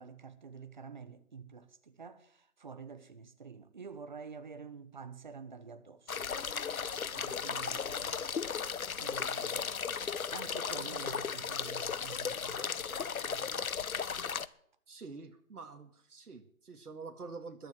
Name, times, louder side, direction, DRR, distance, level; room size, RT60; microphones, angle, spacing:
voice 1, 0.0-6.2 6.9-8.2 9.0-9.6 10.3-13.6, right 5 dB, 30° right, 1.2 m, -48 dB
sound 1, 6.1-14.5, left 6 dB, 70° left, 1.1 m, -36 dB
voice 2, 14.9-17.7, right 4 dB, 90° right, 2.1 m, -47 dB
21.5 x 7.7 x 7.6 m
hypercardioid pair, 170°, 44 cm